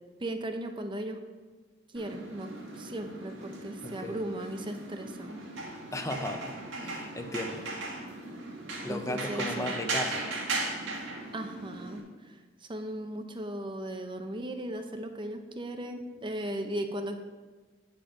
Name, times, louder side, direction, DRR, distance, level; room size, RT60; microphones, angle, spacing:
voice 1, 0.2-1.2 1.9-2.5 2.8-5.4 8.9-9.7 11.3-17.2, right 1 dB, 25° right, 6 dB, 0.7 m, -37 dB
sound 1, 1.9-12.0, right 2 dB, 80° right, 1.8 m, -37 dB
voice 2, 3.8-4.2 5.9-6.5 6.8-7.6 8.8-10.2, left 1 dB, 15° left, 6 dB, 0.7 m, -35 dB
8.8 x 5.9 x 5.1 m, 1.4 s
head